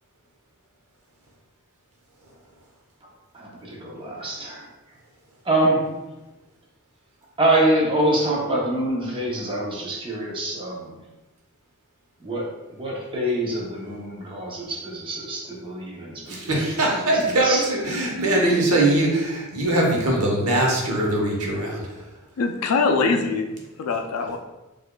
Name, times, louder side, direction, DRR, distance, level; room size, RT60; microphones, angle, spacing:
voice 1, 3.3-4.6 5.4-5.9 7.4-10.9 12.2-12.5 12.8-16.6 17.4-17.6, right 1 dB, 25° right, -4 dB, 0.7 m, -25 dB
voice 2, 16.3-21.9, right 1 dB, 90° right, -1 dB, 0.9 m, -21 dB
voice 3, 22.4-24.4, left 4 dB, 85° left, 5 dB, 0.4 m, -23 dB
4.8 x 2.5 x 2.2 m, 1.1 s
head